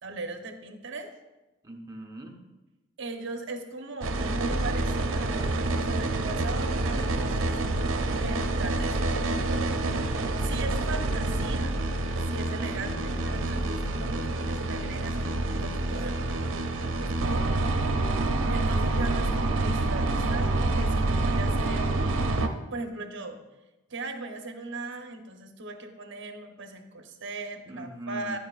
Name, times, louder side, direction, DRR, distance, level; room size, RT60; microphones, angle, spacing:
voice 1, 0.0-1.1 3.0-9.8 10.4-11.8 12.3-16.3 18.5-22.3 22.7-23.4 23.9-28.4, right 3 dB, 65° right, 5 dB, 0.9 m, -39 dB
voice 2, 1.6-2.4 16.9-17.5 27.7-28.4, right 1 dB, 20° right, 1 dB, 0.9 m, -41 dB
sound 1, 4.0-22.5, right 2 dB, 85° right, 0.6 m, -27 dB
10.5 x 9.1 x 2.4 m, 1.1 s
head